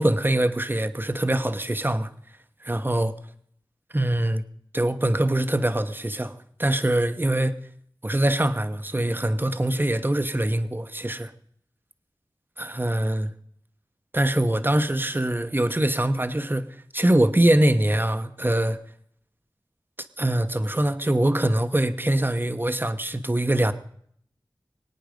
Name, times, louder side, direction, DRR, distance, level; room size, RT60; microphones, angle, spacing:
voice 1, 0.0-2.1 2.6-3.1 3.9-4.4 4.7-7.6 8.0-11.3 12.6-13.3 14.1-18.8 20.2-23.7, right 1 dB, 25° right, 1.0 m, -23 dB
23.5 x 9.1 x 5.2 m
wide cardioid pair, 40°, 8 cm